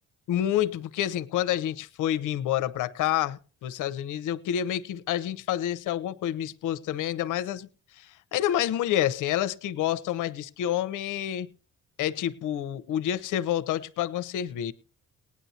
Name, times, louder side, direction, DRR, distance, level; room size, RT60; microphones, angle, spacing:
voice 1, 0.3-7.7 8.0-11.5 12.0-14.7, left 11 dB, 85° left, 0.9 m, -28 dB
19.0 x 9.8 x 2.8 m
cardioid pair, 90°, 30 cm